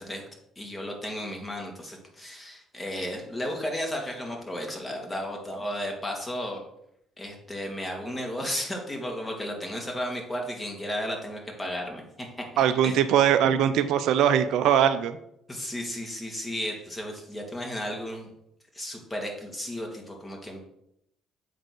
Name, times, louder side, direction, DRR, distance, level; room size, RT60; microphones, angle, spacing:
voice 1, 0.6-6.6 7.2-12.4 12.8-13.0 13.4-13.5 15.5-18.3 18.7-20.6, equal, 20° left, 1 dB, 2.7 m, -34 dB
voice 2, 12.6-15.2, right 9 dB, 70° right, 11 dB, 0.5 m, -21 dB
7.6 x 4.0 x 6.3 m, 0.76 s
hypercardioid pair, 55°, 0 cm